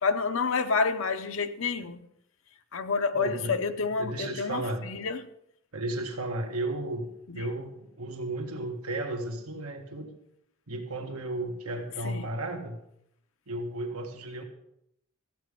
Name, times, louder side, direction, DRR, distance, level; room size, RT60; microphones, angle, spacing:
voice 1, 0.0-2.0 2.7-5.3 7.3-7.5 12.0-12.3, left 4 dB, 65° left, 0.7 m, -29 dB
voice 2, 3.1-3.6 4.0-4.9 5.7-10.1 10.7-12.8 13.5-14.4, right 2 dB, 85° right, 1.9 m, -34 dB
14.0 x 8.6 x 5.2 m
head